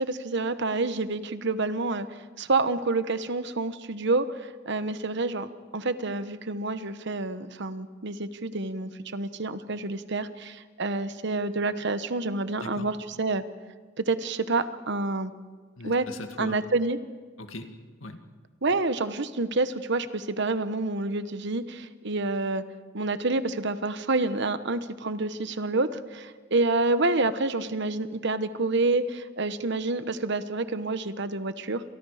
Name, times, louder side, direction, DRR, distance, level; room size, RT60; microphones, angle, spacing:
voice 1, 0.0-2.1 2.4-5.5 5.7-13.4 14.0-15.3 15.8-16.1 16.4-17.0 18.6-22.6 22.9-31.8, right 3 dB, 60° right, 11 dB, 1.1 m, -28 dB
voice 2, 12.6-12.9 15.8-16.6 17.4-18.3, left 2 dB, 85° left, 6 dB, 2.1 m, -40 dB
30.0 x 27.0 x 5.0 m, 1.4 s
head